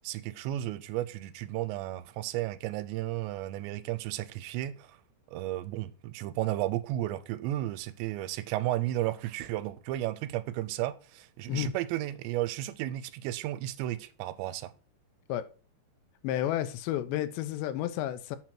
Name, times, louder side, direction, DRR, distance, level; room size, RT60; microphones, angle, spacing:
voice 1, 0.0-5.0 5.3-14.7, right 14 dB, 85° right, 2.9 m, -33 dB
voice 2, 16.2-18.4, left 12 dB, 90° left, 2.9 m, -31 dB
8.4 x 5.9 x 4.4 m
omnidirectional pair, 5.0 m